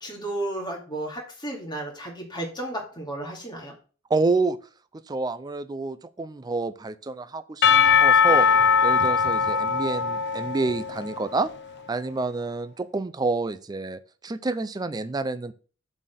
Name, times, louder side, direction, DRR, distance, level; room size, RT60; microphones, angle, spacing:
voice 1, 0.0-3.7, right 1 dB, 20° left, 0 dB, 2.5 m, -33 dB
voice 2, 4.1-4.6 5.1-7.6 7.9-8.5 8.8-11.5 11.9-15.5, right 3 dB, 20° right, 14 dB, 0.4 m, -28 dB
Percussion / Church bell, 7.6-11.6, left 6 dB, 60° left, 0.6 m, -20 dB
7.3 x 4.1 x 6.7 m, 0.39 s
head